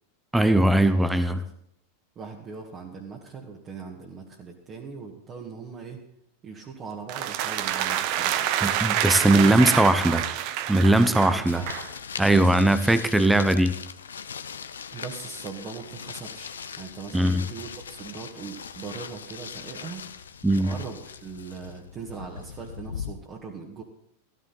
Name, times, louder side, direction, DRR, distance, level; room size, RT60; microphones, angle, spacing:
voice 1, 0.3-1.4 8.6-10.2 10.7-11.6 12.2-13.7 17.1-17.5 20.4-20.7, right 1 dB, 5° right, 12 dB, 0.8 m, -20 dB
voice 2, 2.2-6.0 6.4-8.5 9.2-10.3 11.1-11.7 12.3-13.0 14.9-20.1 20.6-23.8, right 5 dB, 30° right, -2 dB, 2.0 m, -40 dB
sound 1, 7.1-11.9, right 11 dB, 45° right, 1.0 m, -27 dB
sound 2, 11.5-23.1, left 7 dB, 70° left, 0.8 m, -40 dB
14.5 x 13.5 x 4.3 m, 0.75 s
figure-of-eight pair, 90°, 0 cm